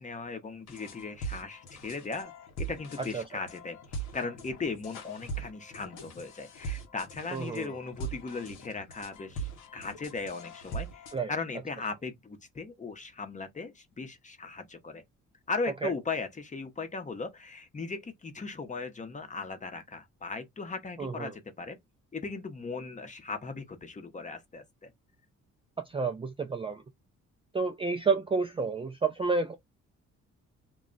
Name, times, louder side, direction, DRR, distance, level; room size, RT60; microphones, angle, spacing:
voice 1, 0.0-2.3 2.6-15.0 15.5-21.8 22.1-24.9, left 4 dB, 25° left, 0.7 m, -38 dB
sound 1, 0.7-11.2, right 3 dB, 85° left, 0.9 m, -41 dB
voice 2, 7.3-7.8 11.1-11.3 15.8-15.9 21.0-21.3 25.9-26.8 27.5-29.6, right 4 dB, 20° right, 0.3 m, -30 dB
2.3 x 2.1 x 3.7 m
cardioid pair, 90°, 30 cm